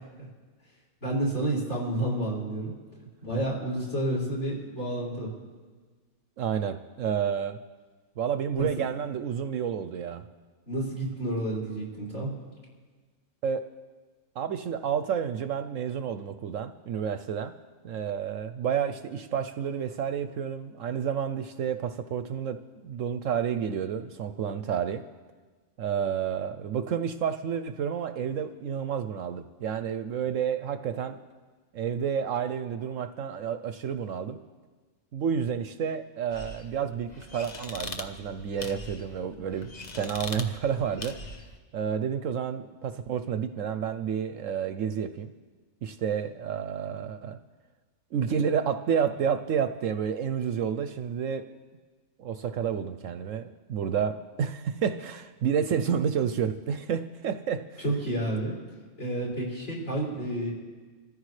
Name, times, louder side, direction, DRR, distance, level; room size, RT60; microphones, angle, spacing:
voice 1, 1.0-2.7 3.2-5.3 10.7-12.3 57.8-58.6 59.0-60.5, right 1 dB, 50° left, -4 dB, 5.9 m, -30 dB
voice 2, 6.4-7.6 8.2-10.2 13.4-13.6 14.4-17.5 17.8-22.6 22.8-25.0 25.8-31.2 31.7-34.4 35.1-39.7 40.0-41.2 41.7-45.3 45.8-47.4 48.1-51.5 52.2-57.8, right 7 dB, 65° right, 10 dB, 0.9 m, -30 dB
sound 1, 36.3-41.6, left 2 dB, 35° left, 1.0 m, -41 dB
27.0 x 14.5 x 3.2 m, 1.4 s
omnidirectional pair, 1.5 m